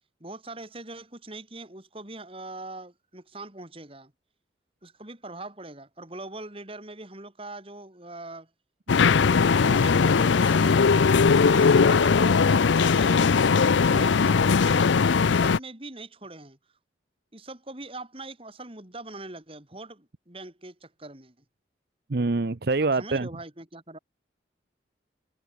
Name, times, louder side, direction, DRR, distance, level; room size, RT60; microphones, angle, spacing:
voice 1, 0.2-4.1 4.8-8.5 9.2-11.0 11.4-16.6 17.3-21.3 22.8-24.0, right 2 dB, 30° right, 3.4 m, -41 dB
sound 1, 8.9-15.6, left 5 dB, 80° left, 0.5 m, -19 dB
voice 2, 22.1-23.3, right 3 dB, 55° right, 0.7 m, -25 dB
head